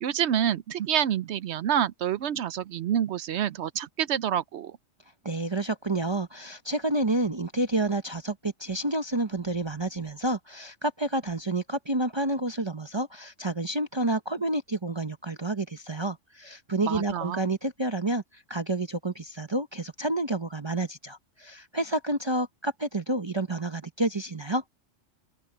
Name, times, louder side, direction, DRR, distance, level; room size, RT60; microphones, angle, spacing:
voice 1, 0.0-4.8 16.8-17.4, right 10 dB, 65° right, 0.8 m, -27 dB
voice 2, 5.2-24.6, right 2 dB, 25° right, 0.8 m, -29 dB
open air
omnidirectional pair, 1.3 m